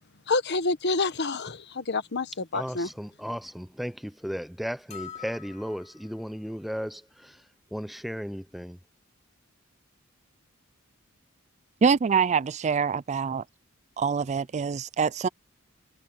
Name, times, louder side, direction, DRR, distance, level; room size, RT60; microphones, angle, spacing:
voice 1, 0.3-2.9, left 3 dB, 55° left, 1.2 m, -28 dB
voice 2, 2.5-7.3 7.7-8.8, equal, ahead, 0.7 m, -35 dB
sound 1, 4.9-6.2, left 8 dB, 30° left, 3.5 m, -45 dB
voice 3, 11.8-13.4 14.0-15.3, right 6 dB, 35° right, 0.4 m, -25 dB
head